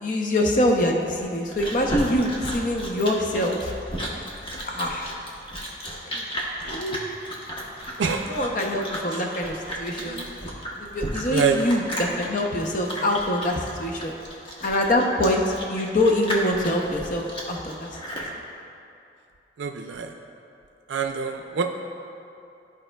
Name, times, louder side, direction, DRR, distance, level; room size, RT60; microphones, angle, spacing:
voice 1, 0.0-3.7 4.7-5.1 6.1-6.3 6.6-7.0 8.3-10.2 10.8-14.1 14.6-18.3, left 1 dB, 45° left, 1 dB, 0.6 m, -25 dB
Chewing mastication, 1.1-18.3, equal, 30° left, 0.9 m, -34 dB
voice 2, 8.0-8.3 10.0-10.3 11.3-11.6 19.6-20.1 20.9-21.6, right 6 dB, 90° right, 4 dB, 0.4 m, -26 dB
13.0 x 4.9 x 2.2 m, 2.7 s
head